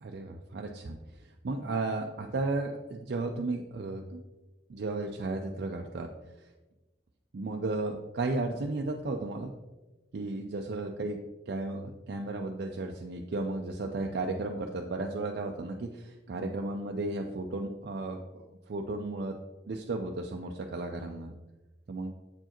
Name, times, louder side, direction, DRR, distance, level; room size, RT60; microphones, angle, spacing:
voice 1, 0.0-4.2 4.7-6.1 6.4-6.5 7.3-9.5 10.1-11.2 11.5-19.4 19.7-21.3 21.9-22.1, right 2 dB, 60° right, 2 dB, 0.4 m, -34 dB
7.7 x 4.6 x 2.9 m, 1.1 s
head